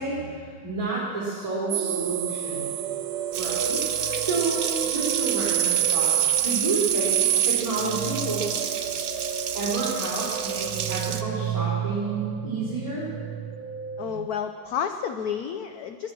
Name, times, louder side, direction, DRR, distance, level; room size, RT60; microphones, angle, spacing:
voice 1, 0.0-2.7 3.4-6.2 6.4-8.5 9.5-13.1, right 3 dB, 20° right, -11 dB, 4.0 m, -30 dB
sound 1, 1.7-14.3, right 10 dB, 80° right, 1.6 m, -28 dB
Water tap faucet, 3.3-11.2, right 8 dB, 60° right, 1.2 m, -32 dB
voice 2, 14.0-16.1, left 8 dB, 65° left, 8 dB, 0.9 m, -30 dB
19.0 x 12.0 x 6.2 m, 2.1 s
omnidirectional pair, 2.2 m